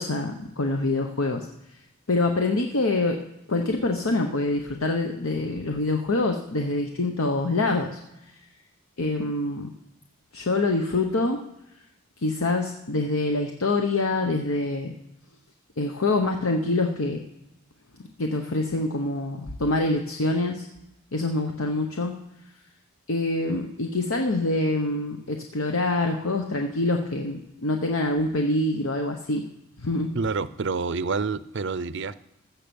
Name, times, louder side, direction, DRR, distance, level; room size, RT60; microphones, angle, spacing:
voice 1, 0.0-1.5 2.1-3.2 3.5-8.0 9.0-9.7 10.3-11.4 12.2-14.9 15.8-17.2 18.2-20.7 21.1-22.2 23.1-29.5 29.8-30.2, left 2 dB, 70° left, 4 dB, 1.0 m, -25 dB
voice 2, 30.1-32.2, right 4 dB, 55° right, 15 dB, 0.6 m, -28 dB
15.0 x 5.6 x 7.1 m, 0.90 s
head